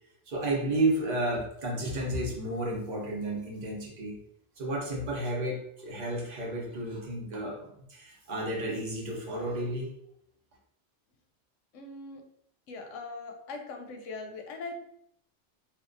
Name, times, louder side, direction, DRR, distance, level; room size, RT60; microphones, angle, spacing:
voice 1, 0.3-4.2 4.6-9.9, right 1 dB, 45° right, -2 dB, 0.8 m, -32 dB
voice 2, 11.7-12.2 12.7-14.8, left 3 dB, 90° left, 3 dB, 0.9 m, -40 dB
3.4 x 2.2 x 2.5 m, 0.72 s
omnidirectional pair, 1.2 m